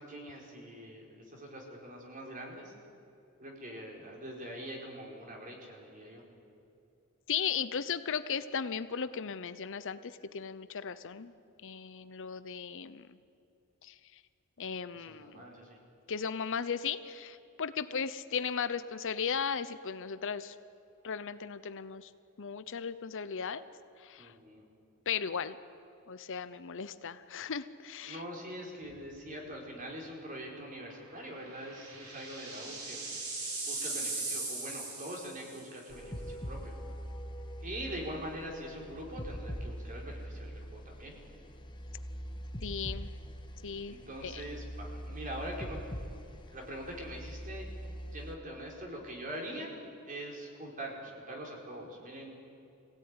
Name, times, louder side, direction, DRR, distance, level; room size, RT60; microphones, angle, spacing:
voice 1, 0.0-2.7 3.4-6.2 14.9-15.8 24.2-24.6 28.0-33.1 33.6-36.7 37.6-41.1 43.9-45.9 46.5-47.7 48.1-49.7 50.1-52.4, equal, 40° right, 0 dB, 4.6 m, -43 dB
voice 2, 7.3-11.3 11.6-13.2 13.8-13.9 14.6-15.4 16.1-20.5 21.0-22.1 22.4-23.6 24.0-24.3 25.1-25.6 26.1-28.2 42.6-43.1 43.6-44.0 44.2-44.4, left 6 dB, 60° left, 13 dB, 0.7 m, -36 dB
sound 1, 28.9-29.2 29.6-29.7 31.1-35.8, right 3 dB, 75° right, 5.4 m, -39 dB
sound 2, 35.9-48.4, equal, 20° left, 1.4 m, -43 dB
23.0 x 16.5 x 9.8 m, 2.8 s
head